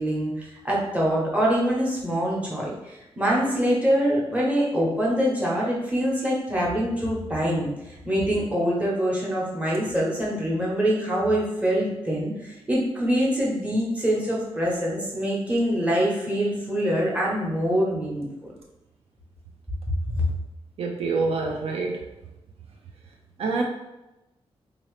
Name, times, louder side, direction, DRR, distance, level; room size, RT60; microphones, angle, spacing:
voice 1, 0.0-18.3 20.1-20.3, equal, 15° right, -5 dB, 0.9 m, -24 dB
voice 2, 20.8-22.0 23.4-23.6, right 3 dB, 70° right, 1 dB, 0.4 m, -26 dB
3.9 x 2.8 x 3.1 m, 0.96 s
wide cardioid pair, 165°, 10 cm